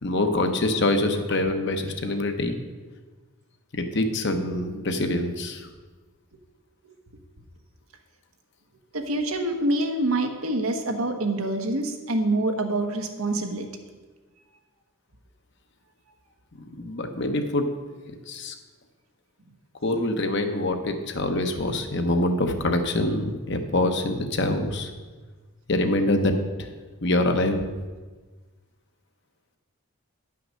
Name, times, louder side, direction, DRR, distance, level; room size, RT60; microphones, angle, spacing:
voice 1, 0.0-2.6 3.7-5.7 16.7-17.7 18.3-18.5 19.8-24.9 25.7-26.3 26.6-26.7 27.0-27.6, left 1 dB, 55° left, 6 dB, 1.0 m, -25 dB
voice 2, 8.9-13.6, right 2 dB, 90° right, 4 dB, 1.3 m, -26 dB
10.0 x 5.9 x 6.3 m, 1.3 s
head